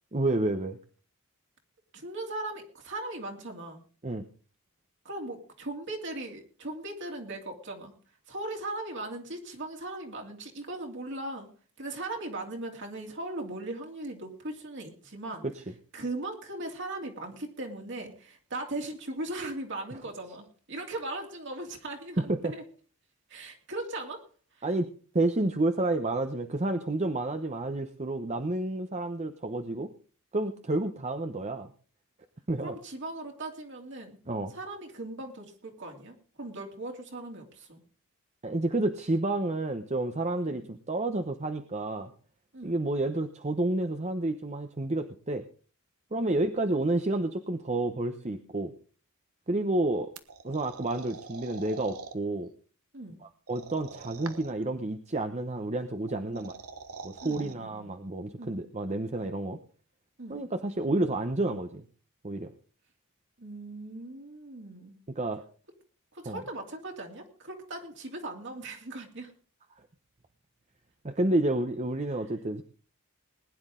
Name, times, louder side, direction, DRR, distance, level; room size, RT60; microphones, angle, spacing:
voice 1, 0.1-0.8 4.0-4.2 22.3-22.5 24.6-24.9 25.1-29.9 30.3-31.7 32.5-32.7 34.3-34.5 38.4-42.1 42.6-45.4 46.1-48.7 49.5-50.1 50.4-52.5 53.5-56.5 57.0-59.6 60.3-61.8 62.2-62.5 65.2-65.4 66.3-66.4 71.0-72.6, right 2 dB, 30° right, 7 dB, 0.9 m, -30 dB
voice 2, 1.9-3.8 5.0-7.9 8.3-11.5 11.8-15.5 15.9-22.6 23.3-24.3 24.5-24.7 32.6-34.2 34.5-37.8 40.5-40.7 42.5-42.8 46.2-46.4 52.9-53.2 56.3-56.5 57.2-57.9 58.4-58.6 60.2-60.4 63.4-65.0 66.1-69.3 72.1-72.3, right 2 dB, 55° right, 2 dB, 2.9 m, -39 dB
sound 1, 50.2-52.2 53.5-54.6 56.1-57.5, right 4 dB, 85° right, 1.3 m, -44 dB
20.5 x 10.5 x 3.8 m, 0.40 s
head